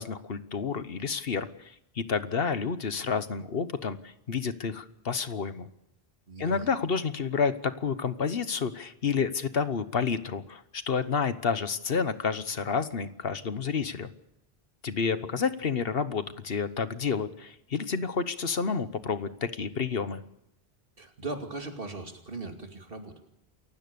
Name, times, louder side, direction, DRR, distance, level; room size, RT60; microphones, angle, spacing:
voice 1, 0.0-5.7 6.4-14.1 14.8-20.2, left 5 dB, 65° left, 12 dB, 1.3 m, -30 dB
voice 2, 6.3-6.7 21.0-23.1, right 3 dB, 60° right, 4 dB, 2.8 m, -38 dB
28.5 x 16.0 x 6.9 m, 0.81 s
omnidirectional pair, 1.1 m